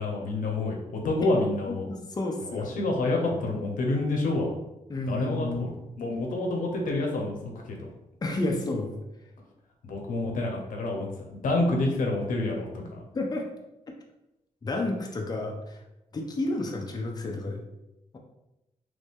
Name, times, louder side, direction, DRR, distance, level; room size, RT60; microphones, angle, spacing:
voice 1, 0.0-1.9 2.4-4.5 5.1-7.8 9.8-13.0, left 2 dB, 80° left, 0 dB, 0.8 m, -28 dB
voice 2, 1.9-2.9 4.9-5.7 8.2-8.9 13.1-13.4 14.6-15.8 16.1-17.6, left 2 dB, 30° left, 1 dB, 0.6 m, -31 dB
3.1 x 2.6 x 3.5 m, 0.92 s
cardioid pair, 75°, 14 cm